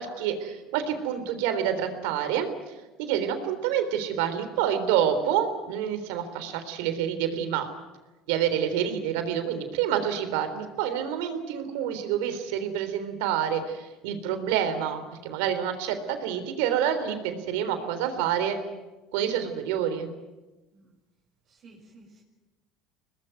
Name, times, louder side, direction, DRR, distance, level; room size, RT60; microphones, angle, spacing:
voice 1, 0.0-7.7 8.3-18.6 19.1-20.1, right 9 dB, 85° right, 9 dB, 3.6 m, -28 dB
voice 2, 21.4-22.2, right 2 dB, 45° right, -3 dB, 6.1 m, -54 dB
23.5 x 19.5 x 9.4 m, 1.1 s
supercardioid pair, 105°, 0 cm